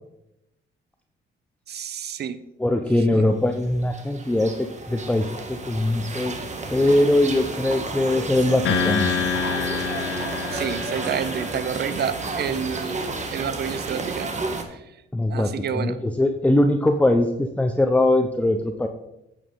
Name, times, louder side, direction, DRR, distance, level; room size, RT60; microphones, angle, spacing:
voice 1, 1.7-2.4 3.1-3.2 10.0-10.2 10.5-13.0 13.3-14.3 14.7-14.9 15.3-16.0, right 7 dB, 55° right, 13 dB, 0.7 m, -29 dB
voice 2, 2.6-9.1 15.1-18.9, left 1 dB, 5° left, 5 dB, 0.7 m, -21 dB
sound 1, 3.5-14.6, right 3 dB, 35° right, 1.4 m, -32 dB
sound 2, 8.6-12.1, left 6 dB, 75° left, 1.2 m, -27 dB
8.8 x 8.1 x 3.8 m, 0.87 s
cardioid pair, 90°, 20 cm